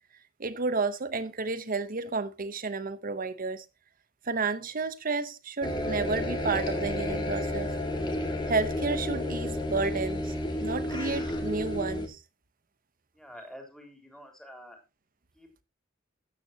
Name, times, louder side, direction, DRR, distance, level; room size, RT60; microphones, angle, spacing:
voice 1, 0.4-3.6 4.2-7.7 8.5-10.3 10.6-12.2, right 4 dB, 45° right, 1.0 m, -31 dB
sound 1, 5.6-12.1, left 1 dB, 25° left, 2.0 m, -31 dB
voice 2, 13.1-14.8 15.3-15.5, equal, 5° left, 3.3 m, -47 dB
13.5 x 9.2 x 2.9 m
head